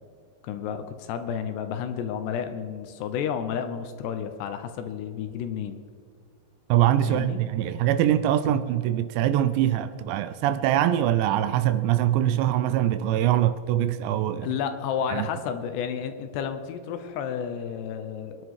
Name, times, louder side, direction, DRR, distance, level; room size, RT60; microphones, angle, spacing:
voice 1, 0.4-5.8 7.0-7.4 8.4-8.6 14.4-18.4, left 8 dB, 75° left, 2.9 m, -31 dB
voice 2, 6.7-14.5 15.1-15.3, right 12 dB, 85° right, 2.8 m, -23 dB
23.0 x 10.5 x 4.8 m
omnidirectional pair, 5.1 m